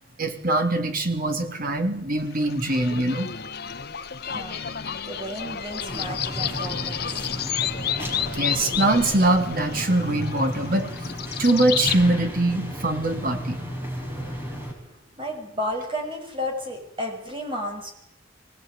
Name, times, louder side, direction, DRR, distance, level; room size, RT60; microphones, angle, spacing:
voice 1, 0.2-3.3 8.4-10.9 11.4-13.6, right 2 dB, 50° right, 5 dB, 3.4 m, -23 dB
sound 1, 2.3-12.0, left 8 dB, 55° left, 1.3 m, -31 dB
voice 2, 4.2-4.6 5.1-7.3 14.9-17.9, left 1 dB, 25° right, 2 dB, 6.5 m, -33 dB
sound 2, 5.9-14.7, equal, 10° right, 5.8 m, -34 dB
24.0 x 19.0 x 9.5 m, 0.75 s
head